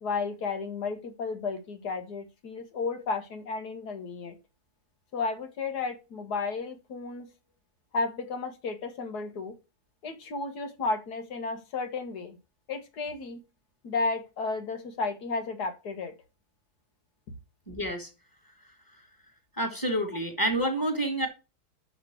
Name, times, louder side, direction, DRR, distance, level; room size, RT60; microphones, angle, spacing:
voice 1, 0.0-4.4 5.1-7.3 7.9-9.6 10.0-12.4 12.7-13.4 13.8-16.1, left 4 dB, 90° left, 1.9 m, -33 dB
voice 2, 17.7-18.1 19.6-21.3, right 1 dB, 15° left, 1.9 m, -28 dB
5.9 x 5.8 x 6.0 m
omnidirectional pair, 1.7 m